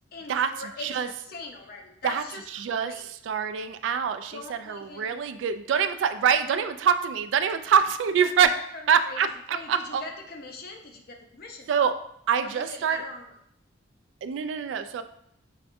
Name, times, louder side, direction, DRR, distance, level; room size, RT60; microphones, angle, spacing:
voice 1, 0.1-2.5 2.8-3.1 4.3-5.2 8.2-8.3 8.7-11.7 12.4-13.3, left 3 dB, 50° left, 3 dB, 0.6 m, -42 dB
voice 2, 2.5-8.6 8.9-10.0 11.7-11.9 12.3-13.0 14.2-15.0, right 7 dB, 75° right, 9 dB, 0.3 m, -25 dB
5.7 x 3.4 x 2.6 m, 0.72 s
head